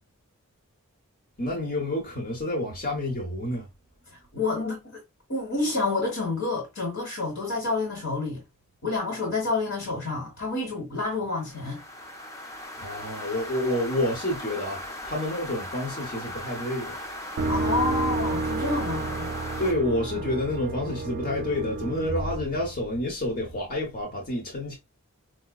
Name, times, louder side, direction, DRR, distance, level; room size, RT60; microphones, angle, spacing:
voice 1, 1.4-3.7 12.8-17.0 19.6-24.8, left 1 dB, 40° left, 0.9 m, -29 dB
voice 2, 4.3-5.0 5.3-8.4 8.8-11.8 17.5-19.3, left 3 dB, 60° left, 1.2 m, -29 dB
sound 1, 11.3-19.7, left 1 dB, 15° left, 0.5 m, -38 dB
sound 2, 17.4-23.3, right 3 dB, 45° right, 0.4 m, -30 dB
4.8 x 2.1 x 2.3 m
head